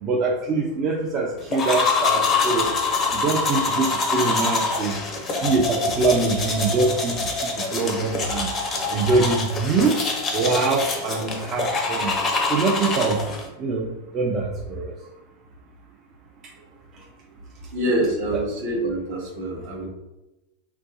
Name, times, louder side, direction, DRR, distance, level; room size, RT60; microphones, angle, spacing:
voice 1, 0.0-2.7 3.1-4.9 5.4-7.3 7.7-8.5 8.9-10.0 10.3-12.1 12.5-13.2 13.6-13.9 14.1-14.9, right 3 dB, 30° right, -2 dB, 0.4 m, -23 dB
sound 1, 1.5-13.5, left 3 dB, 25° left, 0.5 m, -25 dB
voice 2, 17.7-19.9, right 1 dB, 50° right, -1 dB, 0.9 m, -25 dB
3.0 x 2.2 x 2.7 m, 0.98 s
figure-of-eight pair, 90°, 0 cm